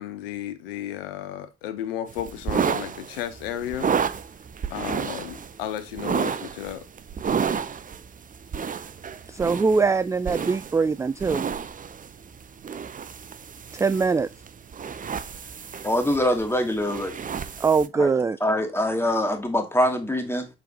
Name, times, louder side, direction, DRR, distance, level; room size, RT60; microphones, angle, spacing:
voice 1, 0.0-3.9 4.7-6.9, left 11 dB, 70° left, 0.7 m, -33 dB
sound 1, 2.1-17.9, right 6 dB, 25° right, 0.7 m, -31 dB
voice 2, 9.3-11.5 13.7-14.3 17.6-18.4, right 4 dB, 10° right, 0.3 m, -22 dB
voice 3, 15.8-17.2 18.0-18.1 18.4-20.5, left 1 dB, 10° left, 2.3 m, -24 dB
6.8 x 6.0 x 2.9 m
figure-of-eight pair, 40°, 30 cm